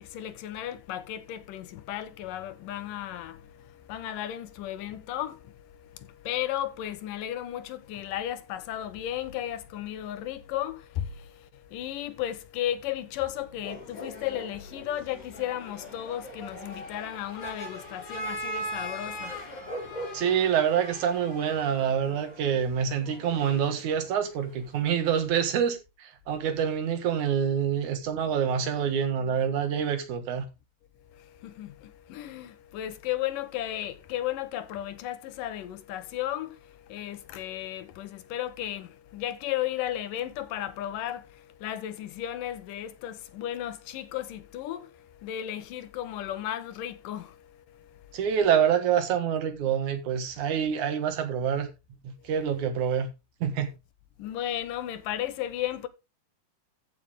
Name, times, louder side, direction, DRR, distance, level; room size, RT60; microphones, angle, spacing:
voice 1, 0.0-20.2 31.0-48.2 52.2-52.3 54.2-55.9, left 12 dB, 90° left, 2.7 m, -35 dB
sound 1, 13.6-24.9, equal, 60° left, 5.4 m, -40 dB
voice 2, 20.1-30.5 48.1-51.7 52.0-53.1 53.4-53.7, right 8 dB, 65° right, 2.8 m, -26 dB
14.5 x 6.0 x 3.7 m
omnidirectional pair, 3.8 m